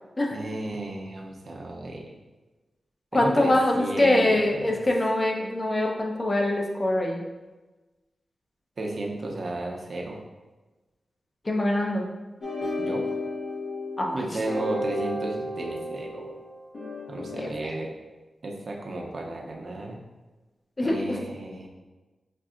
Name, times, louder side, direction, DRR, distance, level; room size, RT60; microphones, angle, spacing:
voice 1, 0.3-2.1 3.1-4.8 8.8-10.2 12.8-13.0 14.1-16.4 17.1-17.9 18.4-20.0 20.8-21.7, right 2 dB, 60° right, 0 dB, 0.7 m, -33 dB
voice 2, 3.1-7.2 11.4-12.1 14.0-14.3 17.4-17.8 20.8-21.2, left 1 dB, 35° left, 0 dB, 0.7 m, -24 dB
sound 1, 12.4-17.5, left 1 dB, 70° left, 1.2 m, -33 dB
5.8 x 2.5 x 2.5 m, 1.2 s
cardioid pair, 70°, 0 cm